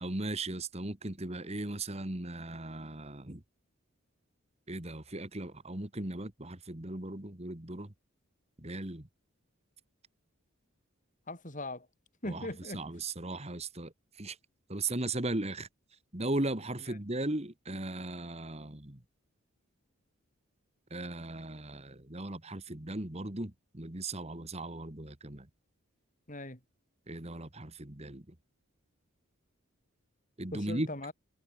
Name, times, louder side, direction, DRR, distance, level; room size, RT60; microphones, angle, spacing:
voice 1, 0.0-3.4 4.7-7.9 8.6-9.0 12.2-12.5 12.7-14.4 14.7-15.7 16.1-19.0 20.9-25.5 27.1-28.3 30.4-30.9, right 2 dB, 30° right, 1.8 m, -37 dB
voice 2, 11.3-11.9 12.2-12.8 16.9-17.0 26.3-26.6 30.5-31.1, left 1 dB, 35° left, 5.7 m, -40 dB
head